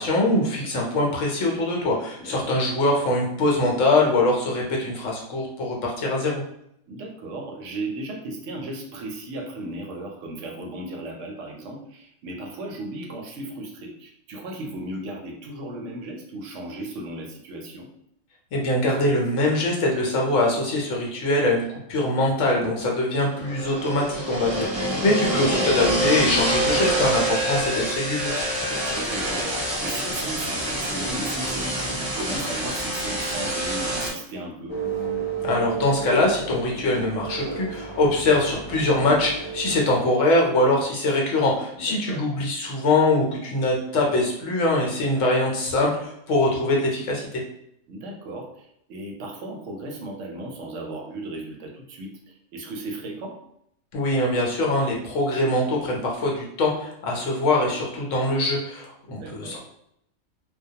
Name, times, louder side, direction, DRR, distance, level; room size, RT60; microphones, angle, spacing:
voice 1, 0.0-6.4 18.5-28.3 35.4-47.3 53.9-59.6, left 2 dB, 75° left, -1 dB, 1.0 m, -23 dB
voice 2, 2.2-2.6 6.9-17.9 24.9-25.3 28.7-34.8 41.7-42.2 47.9-53.4 59.1-59.6, right 1 dB, 70° right, 1 dB, 0.9 m, -36 dB
sound 1, 23.3-34.1, right 1 dB, 35° right, 0.3 m, -26 dB
sound 2, 34.7-39.8, right 6 dB, 35° left, 0.5 m, -32 dB
2.2 x 2.2 x 2.7 m, 0.74 s
omnidirectional pair, 1.4 m